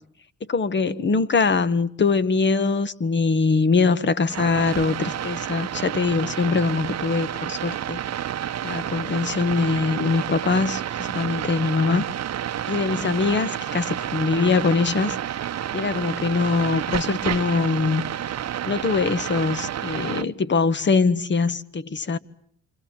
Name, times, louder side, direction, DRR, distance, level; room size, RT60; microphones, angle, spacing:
voice 1, 0.5-8.0 8.6-12.0 12.7-15.2 15.7-18.0 18.7-22.2, left 4 dB, 40° left, 1.6 m, -22 dB
sound 1, 4.3-20.2, right 10 dB, 60° right, 1.1 m, -30 dB
29.0 x 26.0 x 7.5 m
cardioid pair, 90°, 30 cm